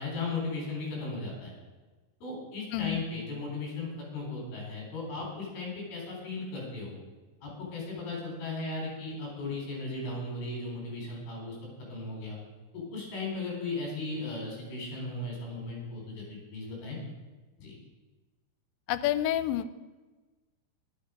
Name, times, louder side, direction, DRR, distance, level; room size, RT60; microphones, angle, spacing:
voice 1, 0.0-1.5 2.2-7.0 7.4-11.6 11.9-12.4 12.7-17.0 17.6-17.8, left 3 dB, 55° left, -2 dB, 5.7 m, -36 dB
voice 2, 2.7-3.0 18.9-19.7, left 12 dB, 90° left, 13 dB, 2.9 m, -28 dB
13.5 x 11.5 x 5.1 m, 1.2 s
omnidirectional pair, 5.2 m